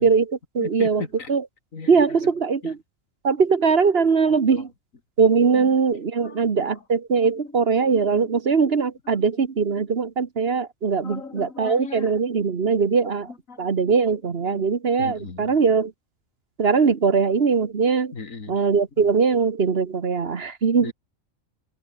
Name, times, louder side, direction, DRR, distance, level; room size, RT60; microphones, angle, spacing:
voice 1, 0.0-1.0 1.3-1.4 1.9-2.8 3.2-4.7 5.2-13.3 13.6-15.9 16.6-18.1 18.5-20.9, right 5 dB, 50° right, 1.5 m, -21 dB
voice 2, 1.7-2.3 2.6-2.7 4.3-4.6 5.5-5.7 6.2-6.7 8.1-8.3 11.0-12.1 13.5-13.9 14.5-14.7 15.0-15.5 18.1-18.6 20.8-20.9, left 4 dB, 85° left, 2.7 m, -38 dB
omnidirectional pair, 1.4 m